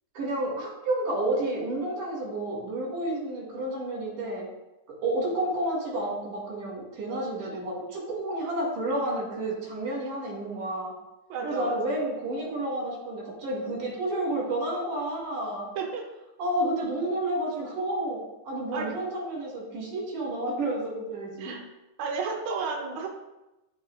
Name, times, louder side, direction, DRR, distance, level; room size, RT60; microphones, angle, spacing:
voice 1, 0.1-4.5 4.9-10.9 11.4-15.7 16.4-21.6, right 1 dB, 85° right, -4 dB, 3.9 m, -30 dB
voice 2, 11.3-11.7 15.8-16.0 18.7-18.9 21.4-21.6 22.0-23.1, right 5 dB, 70° right, -1 dB, 2.1 m, -32 dB
13.0 x 4.7 x 2.4 m, 0.98 s
omnidirectional pair, 3.6 m